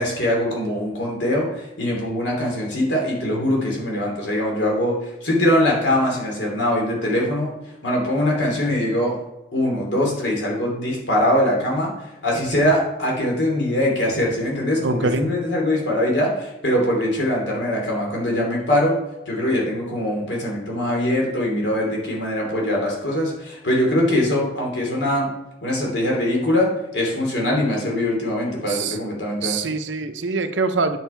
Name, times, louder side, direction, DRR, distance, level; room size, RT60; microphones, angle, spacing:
voice 1, 0.0-7.5 7.8-9.2 9.5-11.9 12.2-19.0 19.3-25.3 25.6-29.7, left 1 dB, 70° left, -2 dB, 3.1 m, -22 dB
voice 2, 14.8-15.3 28.7-29.0 29.4-31.0, right 3 dB, 80° right, 8 dB, 0.8 m, -24 dB
9.1 x 6.3 x 4.5 m, 0.97 s
head